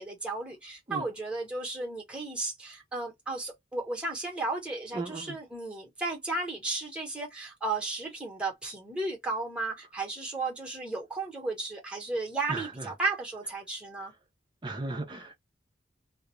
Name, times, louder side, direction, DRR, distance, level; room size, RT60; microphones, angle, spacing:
voice 1, 0.0-14.1, right 3 dB, 5° right, 0.9 m, -34 dB
voice 2, 4.9-5.4 12.5-12.9 14.6-15.4, right 2 dB, 25° right, 0.5 m, -36 dB
2.4 x 2.0 x 3.0 m
head